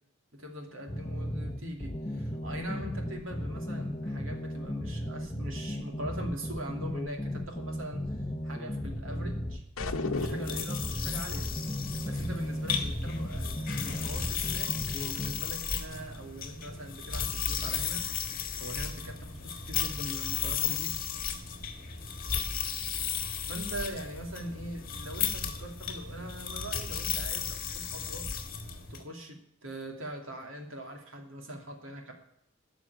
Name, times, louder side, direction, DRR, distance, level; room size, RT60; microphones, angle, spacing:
voice 1, 0.3-8.0 8.4-11.5 12.0-18.0 18.6-21.0 23.5-28.3 28.9-32.1, right 1 dB, 75° right, 2 dB, 2.6 m, -41 dB
sound 1, 0.9-15.3, left 1 dB, 20° left, 0.9 m, -35 dB
sound 2, 9.8-10.8, left 3 dB, 85° left, 0.9 m, -34 dB
sound 3, 10.2-29.0, left 7 dB, 45° left, 1.6 m, -35 dB
13.0 x 6.2 x 9.6 m, 0.77 s
head